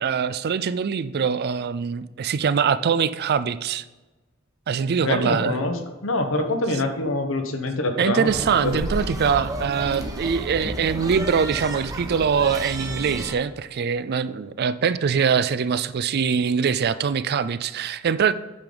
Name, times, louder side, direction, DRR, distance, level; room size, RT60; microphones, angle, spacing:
voice 1, 0.0-3.8 4.7-5.6 8.0-18.3, right 6 dB, 50° right, 14 dB, 0.4 m, -23 dB
voice 2, 5.0-5.7 6.0-8.3 8.6-8.8, left 2 dB, 70° left, 6 dB, 1.1 m, -25 dB
sound 1, 8.3-13.3, right 1 dB, 15° right, 1.0 m, -32 dB
8.8 x 6.8 x 3.9 m, 1.1 s
head